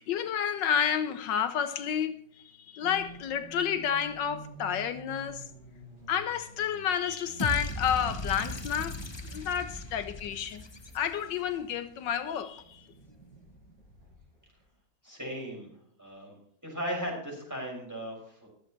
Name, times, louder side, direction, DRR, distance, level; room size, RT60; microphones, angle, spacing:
voice 1, 0.0-5.5 6.1-9.0 9.2-10.6 10.9-12.9, left 8 dB, 80° left, 1.4 m, -30 dB
sound 1, 2.8-14.6, right 2 dB, 80° right, 5.8 m, -50 dB
sound 2, 7.4-11.5, left 1 dB, 25° left, 0.5 m, -37 dB
voice 2, 15.0-15.7 16.0-16.3 16.6-18.5, equal, 10° right, 6.1 m, -37 dB
23.0 x 7.8 x 3.2 m
omnidirectional pair, 2.0 m